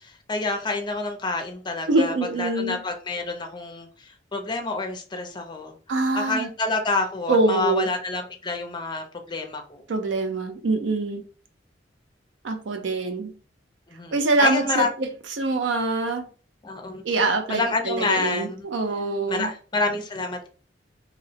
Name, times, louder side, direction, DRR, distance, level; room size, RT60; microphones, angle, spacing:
voice 1, 0.0-5.8 6.1-9.8 13.9-14.9 16.6-17.2 17.5-18.7 19.3-20.5, left 3 dB, 25° left, 0.5 m, -28 dB
voice 2, 1.9-2.8 5.9-6.5 7.3-7.9 9.9-11.2 12.4-13.3 14.1-15.1 15.4-16.3 17.0-19.5, right 2 dB, 90° right, 0.5 m, -24 dB
2.7 x 2.0 x 2.7 m
head